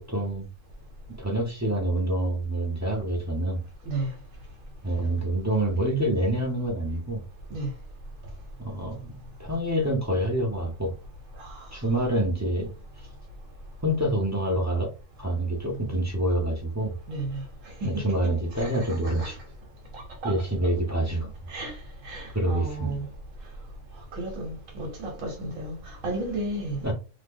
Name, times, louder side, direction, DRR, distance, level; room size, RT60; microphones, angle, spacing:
voice 1, 0.1-0.5 1.2-3.6 4.8-7.2 8.6-10.9 11.7-12.7 13.8-14.9 15.2-16.9 17.8-19.4 20.2-21.3 22.3-23.0 26.8-26.9, right 1 dB, 25° right, 0.4 m, -27 dB
voice 2, 17.1-17.4 17.8-19.3 19.9-20.4 21.5-21.7 22.0-23.1 24.1-26.8, right 2 dB, 70° right, 1.2 m, -33 dB
3.0 x 2.2 x 3.5 m
omnidirectional pair, 1.4 m